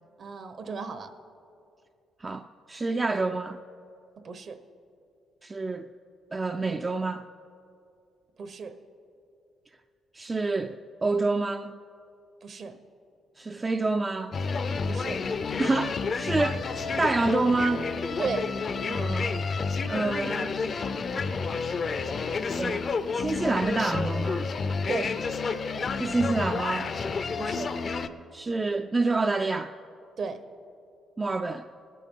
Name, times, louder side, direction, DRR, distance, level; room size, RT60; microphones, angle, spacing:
voice 1, 0.2-1.1 4.2-4.6 8.4-8.7 12.4-12.8 14.9-15.2 18.2-18.5 24.9-25.2 27.4-27.8 30.2-30.4, right 5 dB, 55° right, 9 dB, 0.9 m, -34 dB
voice 2, 2.2-3.6 5.4-5.9 6.3-7.2 10.1-11.8 13.4-14.3 15.6-17.8 18.9-19.5 19.9-20.8 22.6-22.9 23.1-24.4 26.0-26.9 28.3-29.7 31.2-31.7, right 3 dB, 25° right, 7 dB, 0.4 m, -28 dB
sound 1, 14.3-28.1, left 4 dB, 45° left, 0.5 m, -30 dB
19.0 x 9.2 x 3.7 m, 2.5 s
cardioid pair, 90°, 0 cm